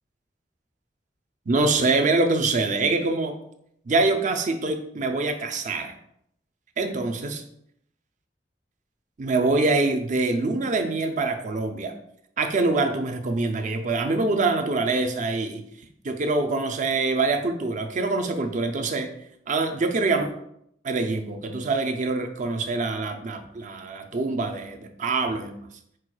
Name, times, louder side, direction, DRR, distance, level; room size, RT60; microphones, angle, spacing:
voice 1, 1.5-3.4 3.9-5.9 6.8-7.4 9.2-12.0 12.4-15.6 16.0-19.1 19.5-20.3 20.8-25.6, right 3 dB, 45° right, 6 dB, 0.5 m, -25 dB
4.5 x 2.3 x 4.6 m, 0.73 s
head